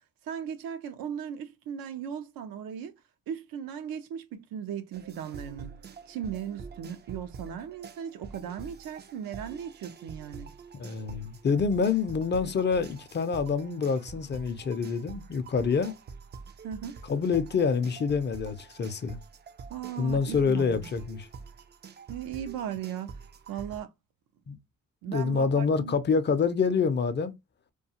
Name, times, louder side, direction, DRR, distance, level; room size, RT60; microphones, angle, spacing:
voice 1, 0.2-3.0 3.3-10.5 16.6-17.0 19.7-20.8 22.1-23.2 23.5-23.9 25.0-26.0, right 8 dB, 80° right, 0.5 m, -37 dB
sound 1, 4.9-23.8, right 5 dB, 30° right, 0.3 m, -46 dB
voice 2, 10.8-15.9 17.1-19.2 20.0-21.3 24.5-24.6 25.1-27.3, left 5 dB, 30° left, 0.5 m, -27 dB
2.3 x 2.3 x 2.7 m
supercardioid pair, 55°, 35 cm